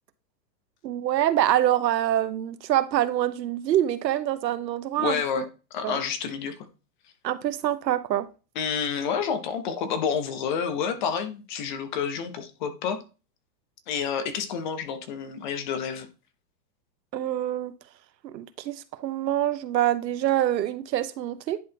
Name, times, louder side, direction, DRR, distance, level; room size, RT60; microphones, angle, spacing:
voice 1, 0.8-5.4 5.8-6.0 7.2-8.3 17.1-17.7 18.2-21.6, right 12 dB, 85° right, 0.9 m, -25 dB
voice 2, 5.0-5.4 5.7-6.5 8.6-13.0 13.9-16.1, left 7 dB, 30° left, 0.7 m, -29 dB
10.5 x 3.9 x 2.8 m
hypercardioid pair, 165°, 50 cm